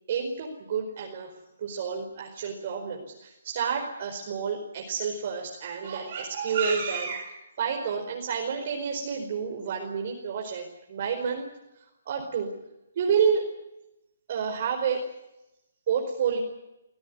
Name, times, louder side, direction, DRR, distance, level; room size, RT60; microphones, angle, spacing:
voice 1, 0.1-1.3 1.6-11.5 12.0-12.5 12.9-13.5 14.3-15.1 15.9-16.4, right 6 dB, 45° right, 1 dB, 4.7 m, -29 dB
25.5 x 16.0 x 9.5 m, 0.90 s
hypercardioid pair, 155°, 0 cm